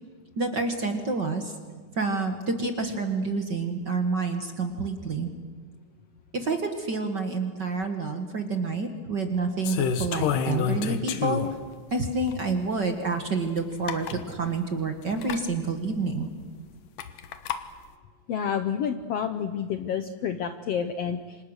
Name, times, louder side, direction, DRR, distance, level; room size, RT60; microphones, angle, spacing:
voice 1, 0.4-1.5 1.9-5.3 6.3-11.5 11.9-16.3, right 3 dB, 40° right, 5 dB, 1.7 m, -28 dB
sound 1, 9.6-11.7 12.3-12.4 13.6-13.7 13.9-14.2 15.2-15.4 17.0-17.6, left 7 dB, 90° left, 2.9 m, -28 dB
voice 2, 18.3-21.4, left 7 dB, 70° left, 8 dB, 1.6 m, -29 dB
28.5 x 26.0 x 6.6 m, 1.5 s
omnidirectional pair, 3.7 m